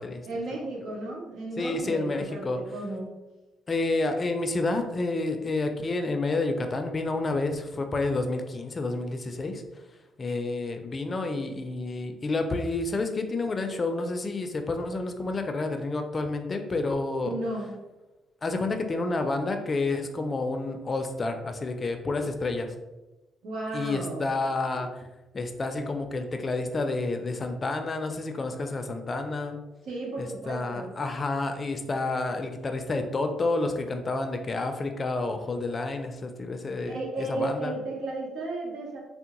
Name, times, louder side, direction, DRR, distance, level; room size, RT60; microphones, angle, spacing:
voice 1, 0.3-3.1 17.2-17.7 23.4-24.3 29.9-30.9 36.8-39.0, right 2 dB, 85° right, -2 dB, 0.9 m, -34 dB
voice 2, 1.6-2.6 3.7-9.6 10.2-17.4 18.4-22.7 23.7-25.1 25.3-29.6 30.2-37.8, left 2 dB, 35° left, 6 dB, 0.4 m, -29 dB
3.5 x 2.0 x 2.9 m, 1.1 s
cardioid pair, 90°, 0 cm